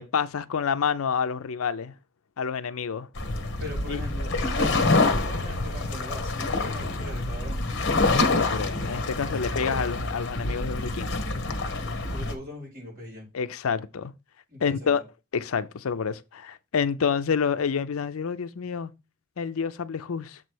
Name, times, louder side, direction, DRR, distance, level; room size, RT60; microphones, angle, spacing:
voice 1, 0.0-1.9 2.4-3.1 3.9-4.0 8.1-11.2 13.3-14.1 14.6-15.0 15.3-18.9 19.4-20.4, left 6 dB, 85° left, 0.5 m, -28 dB
sound 1, 3.2-12.3, left 2 dB, 60° left, 1.2 m, -26 dB
voice 2, 3.6-4.3 4.6-7.7 12.1-13.3 14.5-14.9, left 1 dB, 45° right, 4.6 m, -40 dB
7.3 x 3.2 x 6.1 m
head